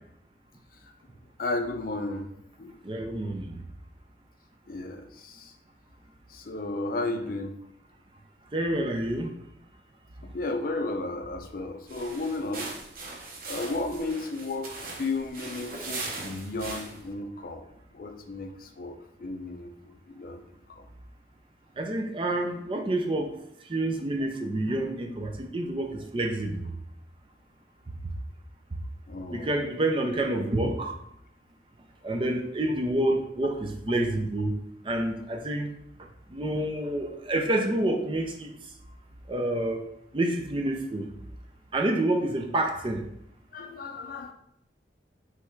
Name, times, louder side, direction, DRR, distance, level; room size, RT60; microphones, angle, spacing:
voice 1, 1.4-2.3 2.6-2.7 4.7-5.5 6.3-7.5 10.3-12.7 13.5-17.7 17.9-19.7 20.2-20.4 29.1-29.5 43.5-44.3, left 2 dB, 50° left, 5 dB, 0.5 m, -33 dB
voice 2, 2.8-3.6 8.5-9.3 21.8-23.3 23.7-26.7 29.3-31.0 32.0-35.7 36.3-38.5 39.3-39.8 40.1-41.1 41.7-43.0, right 1 dB, 30° right, 4 dB, 0.5 m, -28 dB
sound 1, 11.8-17.1, right 3 dB, 50° right, 0.8 m, -40 dB
3.5 x 3.1 x 4.5 m, 0.74 s
head